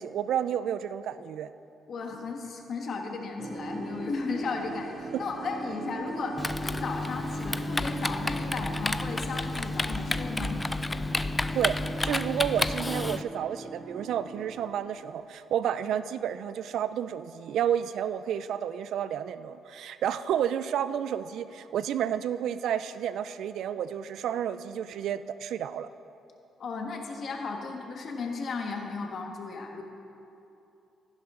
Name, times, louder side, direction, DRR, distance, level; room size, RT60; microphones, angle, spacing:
voice 1, 0.0-1.5 5.1-5.2 11.5-25.9, right 9 dB, 75° right, 13 dB, 0.4 m, -31 dB
voice 2, 1.9-10.6 26.6-29.8, left 4 dB, 55° left, 2 dB, 1.5 m, -35 dB
sound 1, 3.4-15.3, right 2 dB, 35° right, 1.2 m, -40 dB
Typing, 6.4-13.2, left 2 dB, 15° left, 0.3 m, -31 dB
15.0 x 10.5 x 3.8 m, 2.8 s
cardioid pair, 90°, 0 cm